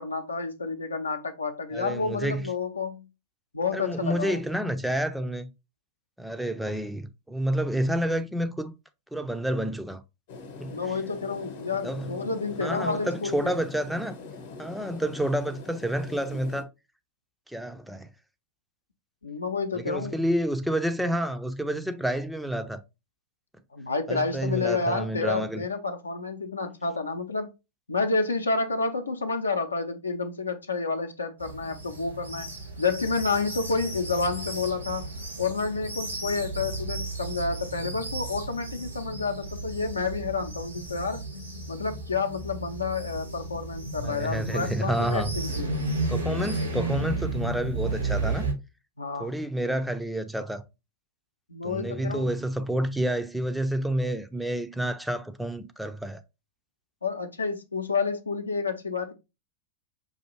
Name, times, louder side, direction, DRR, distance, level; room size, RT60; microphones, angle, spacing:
voice 1, 0.0-3.1 3.5-4.4 7.9-8.0 10.7-13.5 19.2-20.2 23.7-27.5 27.9-32.5 32.8-35.1 35.4-41.2 41.7-45.7 49.0-49.3 51.5-52.3 57.0-59.1, left 4 dB, 80° left, 0.6 m, -29 dB
voice 2, 1.7-2.5 3.7-5.5 6.2-8.7 9.1-10.0 10.6-10.7 11.8-12.1 12.6-14.1 14.6-16.7 17.5-18.1 19.7-22.8 24.1-25.6 44.0-45.3 46.1-48.5 49.2-50.6 51.6-56.2, right 1 dB, ahead, 0.4 m, -29 dB
sound 1, 10.3-16.6, left 4 dB, 55° left, 0.9 m, -42 dB
sound 2, 31.4-48.5, right 2 dB, 85° right, 1.4 m, -33 dB
5.5 x 2.6 x 2.9 m
figure-of-eight pair, 90°, 0 cm